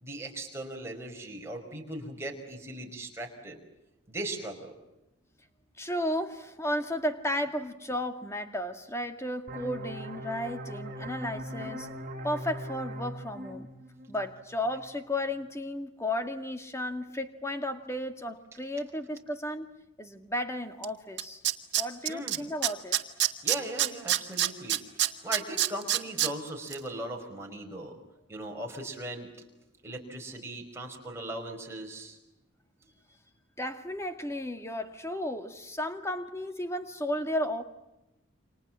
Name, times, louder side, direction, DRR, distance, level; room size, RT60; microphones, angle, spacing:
voice 1, 0.0-3.6 4.1-4.7 22.1-22.4 23.4-24.8 25.2-27.9 28.3-29.3 29.8-32.2, right 1 dB, 15° right, 1 dB, 5.3 m, -38 dB
voice 2, 5.8-11.9 12.2-13.7 14.1-19.7 20.0-21.4 21.8-23.1 33.6-37.6, left 1 dB, 15° left, 7 dB, 2.0 m, -34 dB
sound 1, 9.5-14.9, equal, 40° right, 3.9 m, -40 dB
Tools, 20.8-20.9 21.2-22.4 22.6-26.3 26.7-26.8, right 12 dB, 55° right, 1.9 m, -25 dB
29.5 x 26.5 x 7.5 m, 0.94 s
head